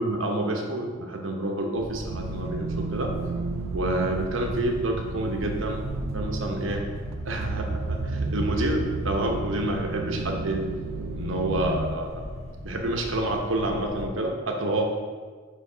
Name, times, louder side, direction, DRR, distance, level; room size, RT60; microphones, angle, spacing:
voice 1, 0.0-3.1 3.7-6.8 7.2-10.6 11.1-12.2 12.6-14.8, right 1 dB, 65° right, 2 dB, 0.9 m, -28 dB
sound 1, 1.8-14.1, left 1 dB, 30° left, 0.7 m, -38 dB
sound 2, 2.1-12.0, right 3 dB, 90° right, 0.4 m, -32 dB
5.1 x 4.8 x 5.0 m, 1.5 s
head